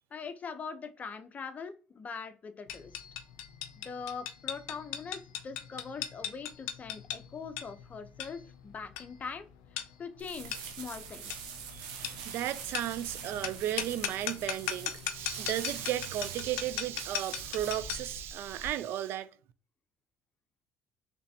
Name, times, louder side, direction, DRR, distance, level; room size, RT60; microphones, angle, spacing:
voice 1, 0.1-3.0 3.8-9.4 10.0-11.4, left 5 dB, 35° left, 0.7 m, -42 dB
sound 1, 2.7-18.2, left 10 dB, 85° left, 0.5 m, -39 dB
sound 2, 10.2-18.7, right 6 dB, 90° right, 0.8 m, -45 dB
voice 2, 11.7-19.3, right 12 dB, 65° right, 0.4 m, -35 dB
3.9 x 3.3 x 2.8 m
supercardioid pair, 75°, 4 cm